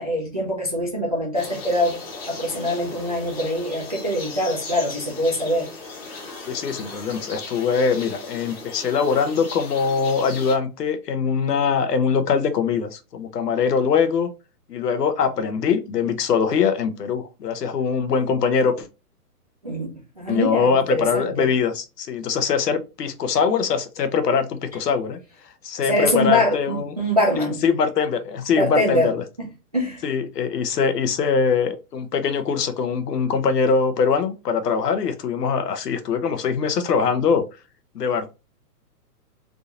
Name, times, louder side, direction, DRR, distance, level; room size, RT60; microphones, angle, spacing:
voice 1, 0.0-2.0 2.2-5.7 19.6-21.5 25.8-27.6 28.6-29.1 29.4-29.5 29.7-30.0, left 1 dB, 25° right, 0.4 m, -23 dB
sound 1, 1.3-10.6, left 3 dB, 40° left, 1.1 m, -37 dB
voice 2, 6.5-14.3 14.7-18.9 20.3-25.2 25.6-26.9 27.6-29.2 30.0-37.4 37.9-38.3, left 6 dB, 80° left, 1.0 m, -22 dB
3.7 x 2.5 x 2.8 m
hypercardioid pair, 170°, 48 cm